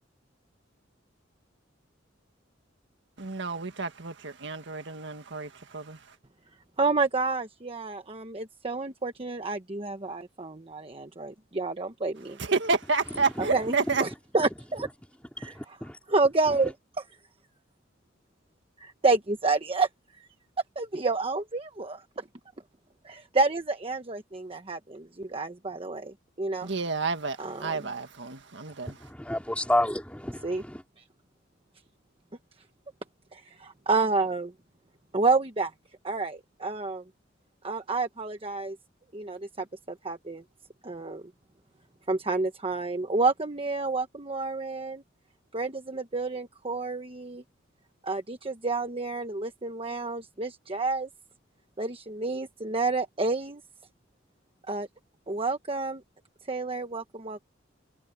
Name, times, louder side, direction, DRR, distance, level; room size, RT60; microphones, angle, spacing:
voice 1, 3.2-6.0 12.4-14.0 26.6-29.0, right 4 dB, 65° right, 1.8 m, -30 dB
voice 2, 6.8-12.4 13.4-14.9 15.4-15.5 16.1-16.7 18.8-19.9 20.2-20.3 20.7-22.2 23.0-26.7 27.4-27.9 30.4-30.6 33.3-34.5 35.1-35.7 36.0-37.0 37.6-38.8 39.1-40.4 40.8-41.2 42.1-45.0 45.5-47.4 48.0-51.1 51.8-53.6 54.7-54.9 55.3-56.0 56.5-57.5, right 3 dB, 30° right, 1.2 m, -29 dB
voice 3, 13.1-13.5 13.9-14.0 14.4-14.5 15.4-16.0 16.5-16.6 28.8-30.8, left 1 dB, 5° left, 4.3 m, -31 dB
head